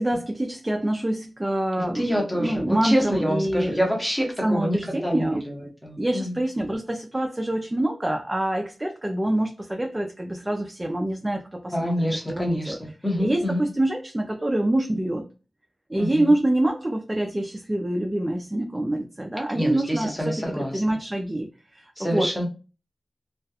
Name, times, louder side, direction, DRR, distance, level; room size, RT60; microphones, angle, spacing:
voice 1, 0.0-3.8 4.4-5.4 6.0-12.8 13.2-15.2 15.9-22.5, right 1 dB, 15° right, 0.3 m, -26 dB
voice 2, 1.8-6.3 11.7-13.6 16.0-16.3 19.5-20.8 22.0-22.5, equal, 5° left, 0.8 m, -27 dB
2.3 x 2.1 x 2.7 m
wide cardioid pair, 115°, 0 cm